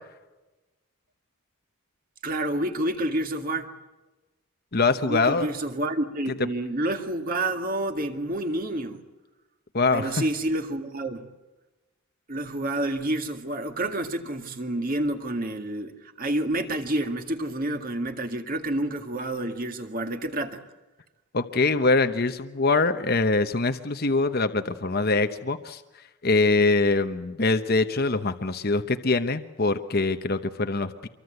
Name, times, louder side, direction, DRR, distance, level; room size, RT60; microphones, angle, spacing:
voice 1, 2.2-3.7 5.0-9.0 9.9-11.3 12.3-20.6, right 1 dB, 40° right, 6 dB, 2.0 m, -29 dB
voice 2, 4.7-5.5 9.7-10.2 21.3-25.8 26.2-31.1, left 3 dB, 45° left, 8 dB, 1.0 m, -23 dB
26.0 x 23.5 x 7.9 m, 1.1 s
head